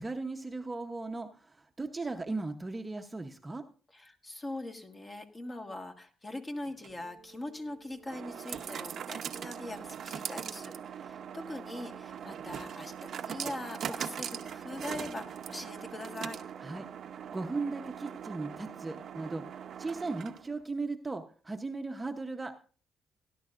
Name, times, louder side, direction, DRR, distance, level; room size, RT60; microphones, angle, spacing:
voice 1, 0.0-3.6 16.6-16.9 17.3-22.5, right 3 dB, 20° right, 6 dB, 0.9 m, -37 dB
voice 2, 3.9-16.4, left 1 dB, 25° left, 4 dB, 1.6 m, -42 dB
sound 1, 6.6-20.6, right 8 dB, 60° right, 0.8 m, -41 dB
17.5 x 11.0 x 2.5 m, 0.40 s
cardioid pair, 90°, 0 cm